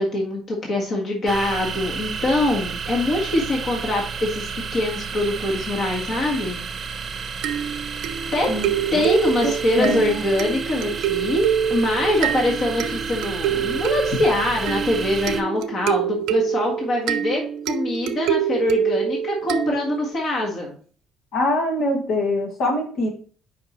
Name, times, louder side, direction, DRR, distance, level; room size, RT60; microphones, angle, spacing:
voice 1, 0.0-6.6 8.3-8.5 8.9-17.4 17.7-20.7, left 1 dB, 40° left, -1 dB, 1.7 m, -23 dB
sound 1, 1.3-15.4, right 5 dB, 25° right, 0.9 m, -31 dB
sound 2, 7.4-20.2, right 9 dB, 85° right, 0.6 m, -26 dB
voice 2, 8.5-9.0 9.4-10.2 21.3-23.1, left 1 dB, 65° left, 1 dB, 2.1 m, -24 dB
7.7 x 5.3 x 3.1 m, 0.43 s
cardioid pair, 165°, 0 cm